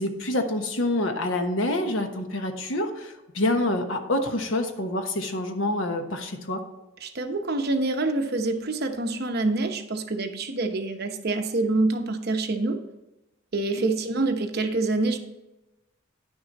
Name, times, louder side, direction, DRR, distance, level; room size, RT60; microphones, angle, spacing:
voice 1, 0.0-6.6, left 1 dB, 80° left, 6 dB, 1.1 m, -27 dB
voice 2, 7.0-12.8 13.5-15.2, right 2 dB, 55° right, 5 dB, 0.9 m, -26 dB
10.0 x 6.3 x 4.2 m, 1.0 s
head